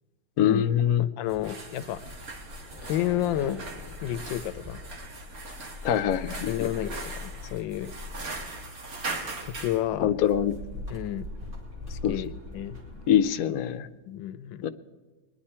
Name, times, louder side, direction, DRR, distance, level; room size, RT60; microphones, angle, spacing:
voice 1, 0.4-1.1 5.8-6.7 10.0-10.6 12.0-12.1 13.1-13.9 14.6-14.7, left 9 dB, 65° left, 9 dB, 0.9 m, -24 dB
voice 2, 1.0-2.0 2.8-3.6 4.0-4.8 6.5-7.9 9.4-10.2 10.9-11.3 11.9-12.8 14.1-14.7, left 12 dB, 85° left, 15 dB, 1.3 m, -31 dB
sound 1, 1.2-9.8, right 3 dB, 50° right, 1.9 m, -40 dB
sound 2, 1.3-5.0, left 2 dB, ahead, 2.3 m, -48 dB
sound 3, 1.9-13.2, left 2 dB, 25° right, 3.3 m, -42 dB
22.0 x 10.5 x 4.3 m, 1.2 s
omnidirectional pair, 2.0 m